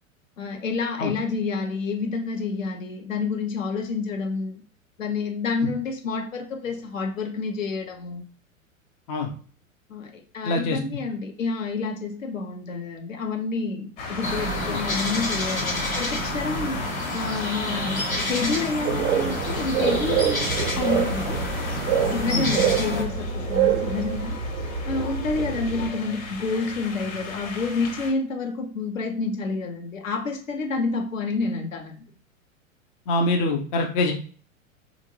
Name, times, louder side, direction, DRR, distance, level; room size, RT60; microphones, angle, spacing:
voice 1, 0.4-4.6 5.0-8.3 9.9-16.8 17.1-21.4 22.0-24.4 24.8-32.0, left 4 dB, 70° left, 0.8 m, -29 dB
voice 2, 10.4-10.8 14.7-14.8 22.3-22.5 33.1-34.1, left 2 dB, 20° left, 0.4 m, -24 dB
sound 1, 14.0-28.1, left 3 dB, 45° left, 1.1 m, -38 dB
sound 2, 14.2-23.0, left 1 dB, 90° left, 1.1 m, -29 dB
sound 3, 18.9-25.9, right 7 dB, 60° right, 0.6 m, -26 dB
3.8 x 2.5 x 2.7 m
figure-of-eight pair, 95°, 41 cm